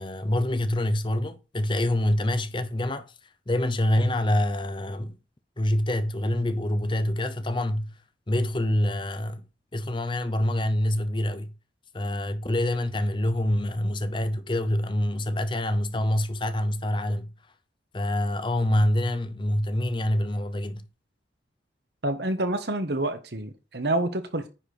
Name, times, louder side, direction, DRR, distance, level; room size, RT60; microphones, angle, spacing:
voice 1, 0.0-3.1 3.5-5.2 5.6-8.0 8.3-9.5 9.7-11.5 11.9-17.3 17.9-20.9, left 1 dB, 25° left, 0.7 m, -26 dB
voice 2, 22.0-24.5, right 1 dB, 60° right, 1.3 m, -28 dB
9.9 x 4.5 x 5.0 m
head